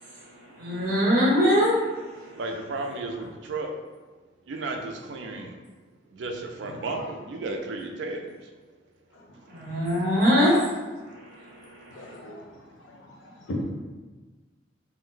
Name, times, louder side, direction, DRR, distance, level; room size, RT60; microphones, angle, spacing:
voice 1, 0.6-1.8 2.2-2.3 9.5-10.7 11.0-12.1, equal, 50° right, -6 dB, 1.0 m, -23 dB
voice 2, 2.4-3.7 4.5-5.5 6.1-8.5, right 2 dB, 70° right, 3 dB, 0.4 m, -33 dB
voice 3, 11.9-13.7, left 1 dB, 90° left, -1 dB, 0.6 m, -38 dB
2.5 x 2.1 x 3.8 m, 1.3 s
head